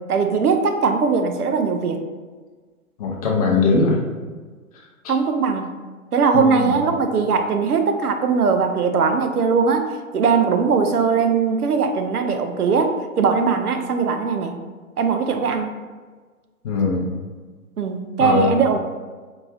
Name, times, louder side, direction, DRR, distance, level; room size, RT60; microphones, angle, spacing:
voice 1, 0.1-2.0 5.1-5.8 6.1-9.9 10.1-14.6 15.0-15.7 17.8-18.8, right 5 dB, 90° right, 6 dB, 0.6 m, -20 dB
voice 2, 3.0-4.0 6.3-6.8 16.6-17.1 18.2-18.5, left 3 dB, 25° left, -2 dB, 0.5 m, -20 dB
4.6 x 2.6 x 2.4 m, 1.4 s
figure-of-eight pair, 125°, 44 cm